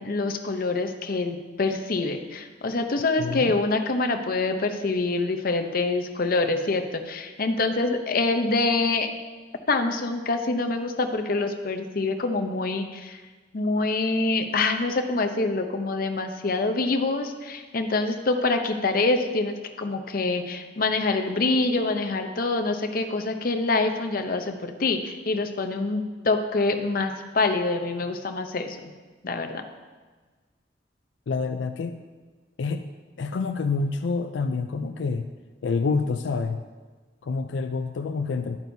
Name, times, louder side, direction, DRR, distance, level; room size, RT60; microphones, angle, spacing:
voice 1, 0.0-9.1 9.7-13.2 13.5-28.9 29.2-29.6, left 3 dB, 55° left, 6 dB, 0.7 m, -25 dB
voice 2, 3.2-3.5 31.3-32.0 32.6-32.9 33.2-35.3 35.6-36.6 37.2-38.6, left 4 dB, 90° left, 8 dB, 0.4 m, -27 dB
11.0 x 8.9 x 2.7 m, 1.4 s
head